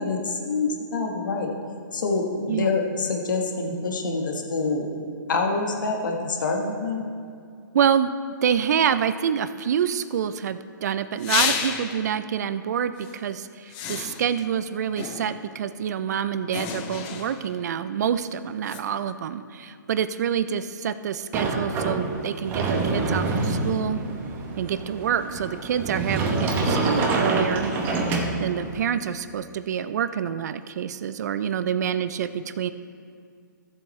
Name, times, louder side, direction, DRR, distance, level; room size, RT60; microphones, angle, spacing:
voice 1, 0.0-1.5 1.9-4.9 5.3-7.0, left 3 dB, 70° left, 1 dB, 1.5 m, -26 dB
voice 2, 7.7-8.1 8.4-24.0 24.6-27.7 28.4-32.7, right 8 dB, 55° right, 12 dB, 0.5 m, -27 dB
sound 1, 11.2-12.1 13.0-13.2 13.7-14.4 15.0-15.6 16.5-17.6 18.7-18.8, left 7 dB, 30° left, 0.7 m, -30 dB
Sliding door, 21.3-28.8, right 3 dB, 20° right, 0.9 m, -26 dB
15.5 x 7.4 x 3.2 m, 2.3 s
hypercardioid pair, 145°, 11 cm